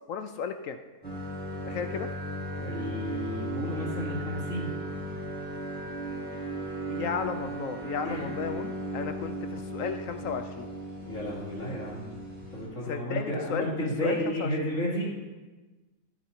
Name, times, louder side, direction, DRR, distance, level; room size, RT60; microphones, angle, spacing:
voice 1, 0.1-0.8 1.6-2.1 6.9-10.7 12.9-14.5, left 7 dB, 70° left, 8 dB, 0.9 m, -34 dB
sound 1, 1.0-12.7, right 1 dB, 5° left, 3.4 m, -36 dB
voice 2, 2.6-4.7 8.0-8.3 11.0-12.0 12.5-15.1, equal, 55° left, -6 dB, 3.1 m, -32 dB
13.0 x 9.1 x 2.8 m, 1.2 s
omnidirectional pair, 1.6 m